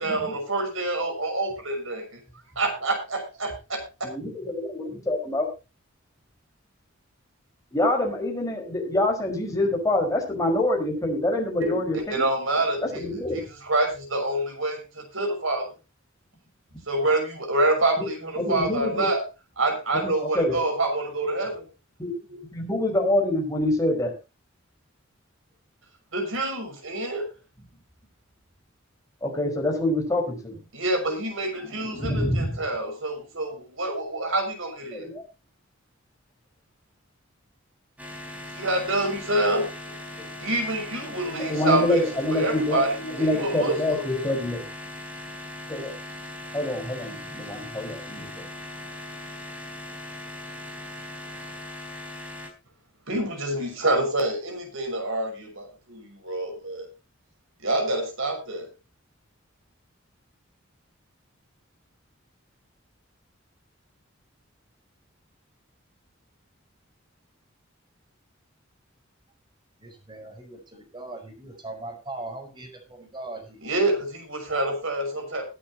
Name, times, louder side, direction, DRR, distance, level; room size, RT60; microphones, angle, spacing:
voice 1, 0.0-2.2 2.6-4.1 11.6-15.7 16.9-19.2 19.6-21.6 22.3-22.4 26.1-27.3 30.7-35.1 38.5-40.0 40.4-44.5 53.1-56.9 57.6-58.7 73.6-75.4, right 2 dB, 80° right, 4 dB, 6.1 m, -27 dB
voice 2, 4.0-5.5 7.7-12.2 12.9-13.4 18.4-19.1 20.0-20.5 22.0-22.1 22.5-24.1 29.2-30.6 31.7-32.5 34.9-35.2 41.5-42.8 43.1-44.6 45.7-45.9 46.5-48.3, left 1 dB, 15° left, 1 dB, 5.0 m, -26 dB
sound 1, 38.0-52.5, left 1 dB, 5° right, 4.1 m, -39 dB
voice 3, 69.8-73.6, right 2 dB, 25° right, 4 dB, 4.8 m, -39 dB
21.0 x 9.1 x 2.9 m, 0.29 s
head